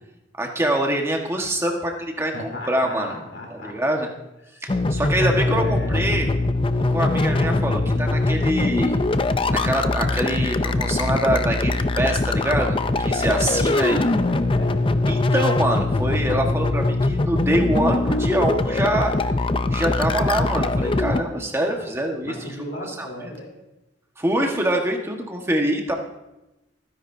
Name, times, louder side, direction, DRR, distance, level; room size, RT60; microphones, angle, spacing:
voice 1, 0.3-3.1 3.5-4.1 4.6-6.3 6.8-9.0 9.5-14.0 15.1-19.1 19.7-22.6 23.0-23.3 24.2-25.9, right 1 dB, 15° right, 1 dB, 1.5 m, -24 dB
voice 2, 2.3-3.8 4.5-4.8 5.3-6.2 13.4-15.0 21.1-21.9 22.2-23.5, left 1 dB, 85° left, 0 dB, 3.6 m, -36 dB
sound 1, 4.7-21.2, left 2 dB, 30° left, 0.5 m, -22 dB
28.0 x 10.0 x 2.7 m, 0.96 s
head